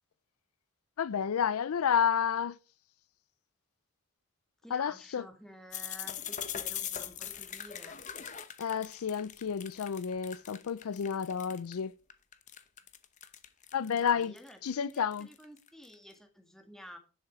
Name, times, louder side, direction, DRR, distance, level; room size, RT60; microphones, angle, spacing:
voice 1, 1.0-2.6 4.7-5.3 8.6-11.9 13.7-14.3 14.6-15.3, left 7 dB, 80° left, 0.4 m, -30 dB
voice 2, 4.6-8.0 13.9-17.0, equal, ahead, 1.6 m, -51 dB
sound 1, 5.7-11.7 12.1-15.9, left 9 dB, 35° left, 0.9 m, -41 dB
10.5 x 7.0 x 4.8 m
head